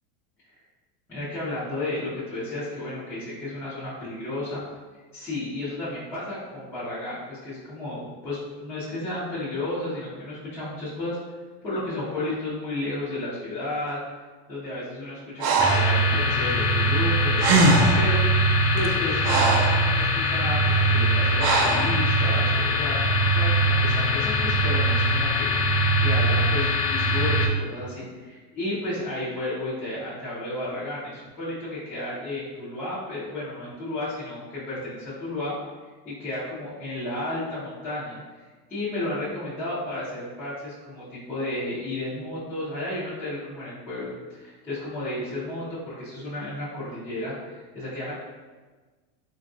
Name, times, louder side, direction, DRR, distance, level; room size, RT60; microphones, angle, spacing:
voice 1, 1.1-4.6 5.1-11.2 11.6-14.0 14.5-18.2 18.7-35.5 36.0-38.2 38.7-48.1, left 1 dB, 5° left, -13 dB, 0.4 m, -32 dB
Breathing, 15.4-15.9 17.1-17.2 17.4-18.1 18.8-19.8 21.4-21.9, right 3 dB, 85° right, 0.6 m, -21 dB
sound 1, 15.6-27.5, equal, 85° left, 0.6 m, -22 dB
3.8 x 2.3 x 2.5 m, 1.3 s
supercardioid pair, 160°, 47 cm